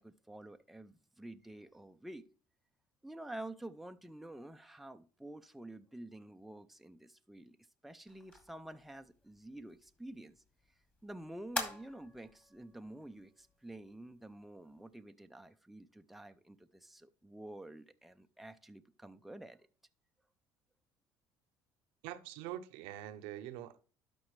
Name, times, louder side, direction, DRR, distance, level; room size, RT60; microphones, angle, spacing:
voice 1, 0.0-2.3 3.0-7.6 7.8-10.4 11.0-19.7, right 1 dB, ahead, 0.5 m, -49 dB
sound 1, 8.1-15.0, left 2 dB, 15° left, 2.3 m, -47 dB
voice 2, 22.0-23.8, right 12 dB, 80° right, 0.7 m, -44 dB
12.0 x 5.3 x 3.2 m
supercardioid pair, 90°, 10 cm